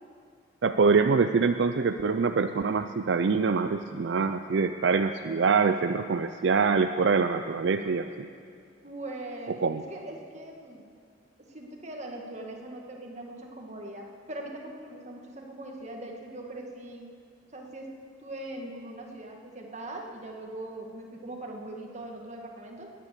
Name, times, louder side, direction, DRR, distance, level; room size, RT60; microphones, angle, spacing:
voice 1, 0.6-8.3 9.6-9.8, right 4 dB, 65° right, 8 dB, 0.5 m, -24 dB
voice 2, 8.8-10.9 11.4-17.1 17.5-17.9 18.2-22.9, right 1 dB, 35° right, 1 dB, 1.8 m, -41 dB
19.5 x 10.0 x 6.7 m, 2.3 s
head